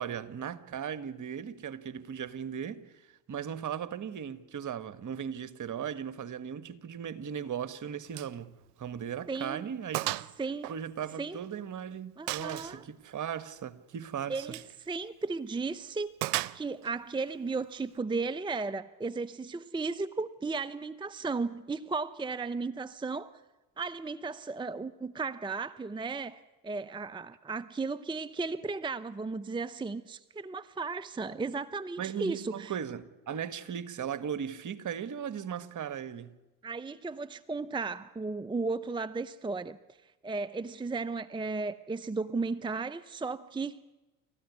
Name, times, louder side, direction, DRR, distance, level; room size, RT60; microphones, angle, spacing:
voice 1, 0.0-2.8 3.3-10.2 10.7-14.5 32.0-36.3, right 8 dB, 40° right, 1.7 m, -37 dB
Gunshot gunfire, 8.1-8.4 8.7-8.8 9.3-9.4 9.9-10.3 10.6-11.6 12.3-12.8 14.4-14.7 16.2-16.9, right 18 dB, 75° right, 0.8 m, -34 dB
voice 2, 9.3-9.7 10.4-10.7 11.2-11.4 12.2-12.8 14.3-14.6 14.9-16.1 16.5-23.3 23.8-32.8 36.6-39.8 40.2-43.8, right 4 dB, 10° right, 0.7 m, -35 dB
29.0 x 14.5 x 9.7 m
hypercardioid pair, 65°, 45 cm